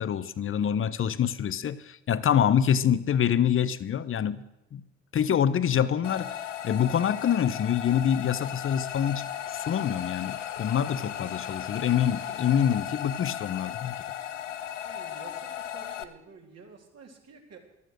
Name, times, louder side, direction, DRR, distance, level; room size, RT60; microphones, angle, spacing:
voice 1, 0.0-4.4 4.7-4.8 5.1-14.0, left 9 dB, 35° left, 15 dB, 1.0 m, -26 dB
sound 1, 6.0-16.0, left 10 dB, 85° left, 0.8 m, -36 dB
voice 2, 14.8-17.6, right 5 dB, 45° right, 1 dB, 3.8 m, -50 dB
14.0 x 12.5 x 6.6 m, 0.88 s
figure-of-eight pair, 55°, 36 cm